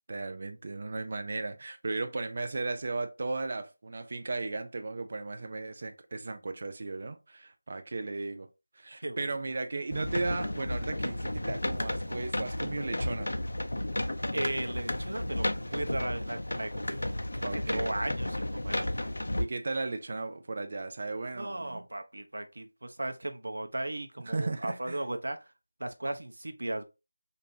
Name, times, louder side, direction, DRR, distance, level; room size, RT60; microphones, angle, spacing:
voice 1, 0.1-8.5 8.8-13.3 17.4-18.1 19.4-21.8 24.3-25.0, right 3 dB, 30° right, 0.3 m, -36 dB
sound 1, 9.9-19.4, left 1 dB, 70° left, 0.6 m, -33 dB
voice 2, 14.3-17.0 17.3-19.3 21.4-25.4 25.8-26.8, right 1 dB, 60° right, 0.8 m, -36 dB
5.2 x 2.6 x 2.6 m
figure-of-eight pair, 180°, 0 cm